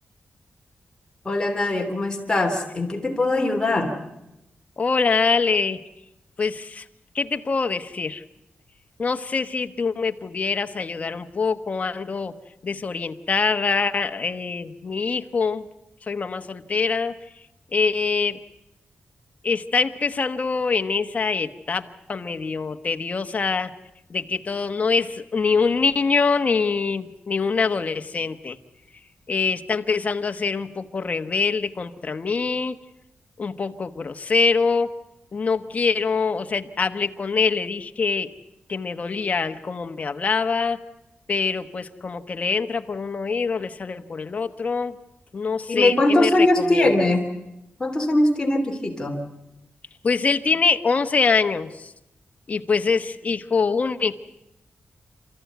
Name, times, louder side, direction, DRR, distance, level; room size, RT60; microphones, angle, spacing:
voice 1, 1.2-3.9 45.7-47.2 47.8-49.2, left 2 dB, 20° left, 2 dB, 3.1 m, -21 dB
voice 2, 4.8-5.8 6.4-6.9 7.1-8.2 9.0-12.4 12.6-15.7 16.0-17.5 17.7-18.4 19.4-23.7 24.1-28.6 29.3-32.8 33.4-34.9 35.3-38.3 38.7-40.8 41.3-45.0 45.3-47.1 50.0-51.9 52.5-54.1, left 4 dB, 35° left, 7 dB, 1.2 m, -24 dB
29.0 x 14.5 x 9.3 m, 0.91 s
wide cardioid pair, 155°, 4 cm